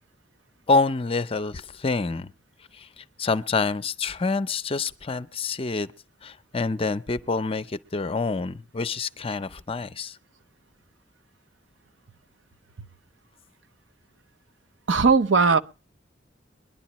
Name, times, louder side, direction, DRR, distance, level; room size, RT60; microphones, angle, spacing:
voice 1, 0.7-2.3 2.7-5.9 6.2-10.2, left 3 dB, 30° left, 0.6 m, -27 dB
voice 2, 14.9-15.6, right 4 dB, 90° right, 0.8 m, -18 dB
22.5 x 11.0 x 3.0 m
head